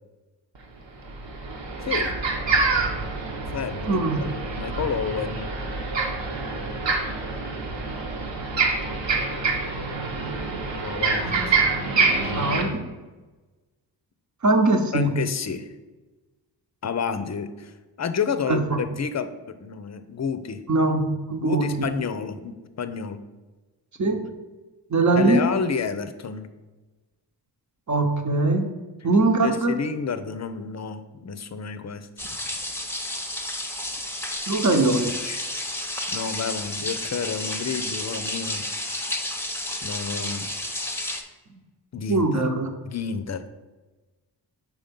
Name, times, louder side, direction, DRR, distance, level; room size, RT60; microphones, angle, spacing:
sound 1, 0.5-0.6 1.0-12.6, right 4 dB, 70° right, 1.2 m, -26 dB
voice 1, 1.8-2.1 3.5-3.9 4.2-5.5 10.8-11.6 12.2-12.7 14.9-15.7 16.8-17.7 18.0-20.6 21.4-23.2 24.0-24.1 25.2-26.5 29.4-32.1 35.2-35.4 36.1-39.1 39.8-40.5 41.9-42.5 42.8-43.4, left 6 dB, 35° left, 11 dB, 0.6 m, -30 dB
voice 2, 3.8-4.2 6.7-6.8 12.3-12.8 14.4-15.1 18.5-18.8 20.7-21.7 24.0-24.2 24.9-25.4 27.9-28.7 29.0-29.8 34.5-35.1 42.1-42.7, right 2 dB, 40° right, 5 dB, 1.0 m, -21 dB
sound 2, 32.2-41.2, left 1 dB, 5° left, 0.8 m, -31 dB
4.8 x 3.7 x 5.3 m, 1.2 s
cardioid pair, 45°, 45 cm